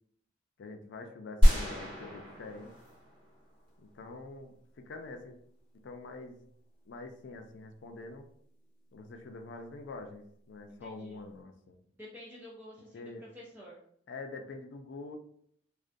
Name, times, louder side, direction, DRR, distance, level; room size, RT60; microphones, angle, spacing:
voice 1, 0.6-2.7 3.8-5.4 5.8-6.4 6.9-8.3 8.9-11.8 12.9-13.3 14.1-15.2, left 3 dB, 80° left, 5 dB, 0.4 m, -45 dB
sound 1, 1.4-3.7, equal, 30° right, 1.0 m, -27 dB
voice 2, 10.7-11.2 11.9-13.8, left 1 dB, 10° right, -5 dB, 0.4 m, -50 dB
2.4 x 2.1 x 2.5 m, 0.66 s
head